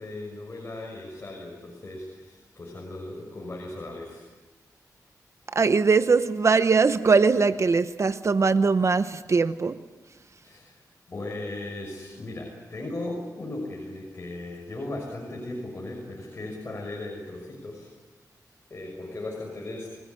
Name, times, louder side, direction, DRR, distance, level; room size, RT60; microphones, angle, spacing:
voice 1, 0.0-4.2 10.4-10.8 11.1-17.9 18.7-19.9, left 2 dB, 40° left, 0 dB, 6.3 m, -37 dB
voice 2, 5.5-9.8, right 4 dB, 45° right, 12 dB, 0.9 m, -21 dB
28.0 x 18.5 x 9.6 m, 1.3 s
cardioid pair, 80°, 7 cm